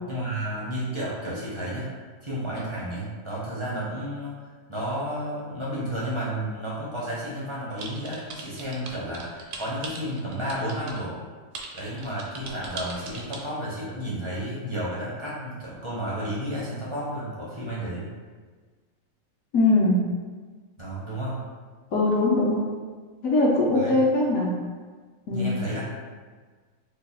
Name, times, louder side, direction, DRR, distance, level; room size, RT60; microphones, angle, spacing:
voice 1, 0.1-1.9 2.2-11.2 11.7-18.1 20.8-21.4 23.7-24.0 25.3-25.8, right 1 dB, 40° right, -7 dB, 0.4 m, -32 dB
sound 1, 7.8-11.0 11.5-13.4, right 4 dB, 70° right, 1.0 m, -38 dB
voice 2, 19.5-20.1 21.9-22.7 23.2-24.6 25.3-25.6, left 2 dB, 70° left, -4 dB, 1.0 m, -21 dB
3.0 x 2.2 x 4.0 m, 1.5 s
omnidirectional pair, 1.5 m